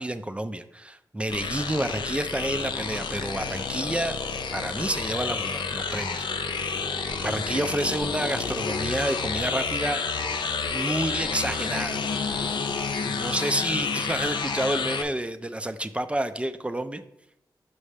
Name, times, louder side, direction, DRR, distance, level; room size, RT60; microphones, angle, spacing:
voice 1, 0.0-4.2 4.5-6.8 7.2-10.0 10.7-12.5 13.0-17.0, right 1 dB, 15° right, 10 dB, 0.4 m, -29 dB
sound 1, 1.3-15.0, left 5 dB, 75° left, 0.5 m, -30 dB
sound 2, 1.7-14.5, right 4 dB, 80° right, 0.8 m, -45 dB
6.1 x 5.4 x 3.3 m, 0.82 s
cardioid pair, 50°, 8 cm